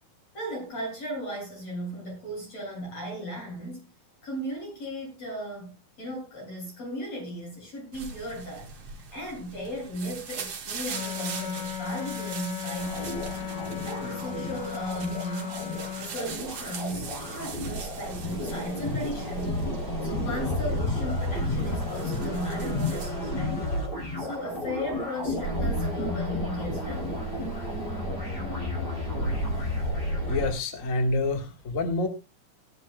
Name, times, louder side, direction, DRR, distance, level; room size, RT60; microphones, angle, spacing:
voice 1, 0.3-3.9 4.2-5.7 6.0-13.3 13.8-15.6 16.0-19.6 20.0-23.7 24.2-27.2, equal, 45° left, -2 dB, 8.1 m, -36 dB
sound 1, 7.9-23.1, right 6 dB, 55° right, 3.1 m, -42 dB
Wind instrument woodwind instrument, 10.9-16.1, left 11 dB, 80° left, 3.5 m, -36 dB
sound 2, 12.8-30.5, left 1 dB, 15° left, 2.7 m, -31 dB
voice 2, 30.3-32.1, left 2 dB, 65° left, 6 dB, 0.7 m, -27 dB
17.5 x 11.5 x 2.2 m, 0.25 s
omnidirectional pair, 4.1 m